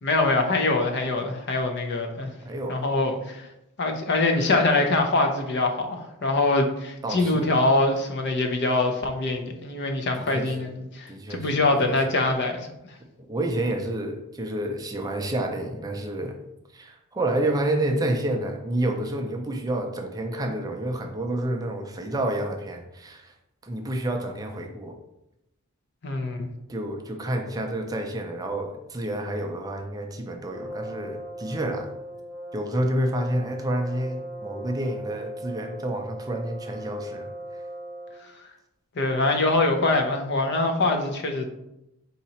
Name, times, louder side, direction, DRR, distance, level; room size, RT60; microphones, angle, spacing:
voice 1, 0.0-2.3 2.7-3.5 3.8-12.7 26.0-26.5 39.0-41.5, left 2 dB, 50° left, 4 dB, 0.6 m, -24 dB
voice 2, 2.4-2.9 7.0-7.6 10.1-10.8 11.1-12.0 13.2-16.4 16.7-23.3 23.6-24.9 26.7-31.9 32.5-37.6, right 1 dB, 15° right, 3 dB, 0.4 m, -29 dB
Brass instrument, 30.5-38.3, right 1 dB, 10° left, 1.0 m, -38 dB
4.0 x 2.8 x 4.1 m, 0.86 s
head